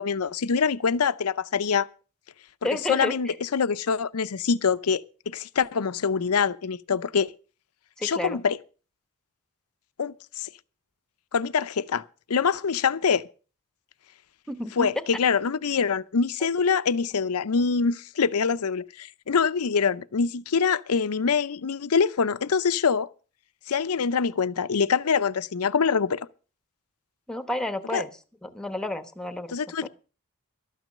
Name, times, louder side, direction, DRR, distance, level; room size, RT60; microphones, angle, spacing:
voice 1, 0.0-1.9 2.9-7.3 8.0-8.6 10.0-10.5 11.3-12.0 12.3-13.2 14.8-23.1 23.7-26.3 27.9-28.0 29.5-29.9, left 5 dB, 75° left, 0.6 m, -25 dB
voice 2, 2.6-3.4 8.0-8.4 14.5-14.9 27.3-28.1 28.4-29.9, left 1 dB, 5° left, 1.1 m, -31 dB
13.0 x 9.2 x 6.5 m
head